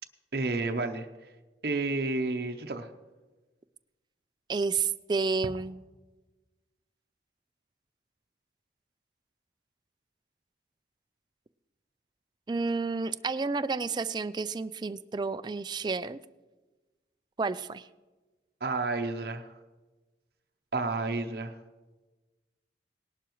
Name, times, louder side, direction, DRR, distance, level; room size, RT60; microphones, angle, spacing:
voice 1, 0.3-1.1 1.6-2.9 18.6-19.5 20.7-21.6, right 3 dB, 60° right, 5 dB, 0.7 m, -30 dB
voice 2, 4.5-5.8 12.5-16.2 17.4-17.9, right 4 dB, 25° right, 13 dB, 0.3 m, -30 dB
19.0 x 11.5 x 3.1 m, 1.2 s
head